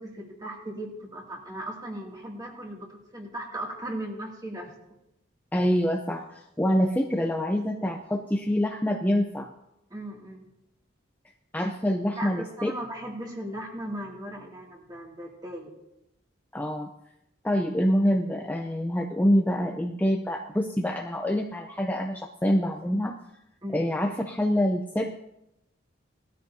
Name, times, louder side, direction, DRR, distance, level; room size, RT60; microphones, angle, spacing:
voice 1, 0.0-4.7 9.9-10.5 12.2-15.7 23.6-23.8, right 1 dB, 20° right, -1 dB, 2.5 m, -37 dB
voice 2, 5.5-9.5 11.5-12.7 16.5-16.9 17.4-23.2 23.7-25.1, equal, 10° left, 2 dB, 0.6 m, -26 dB
18.5 x 13.0 x 2.8 m, 0.86 s
head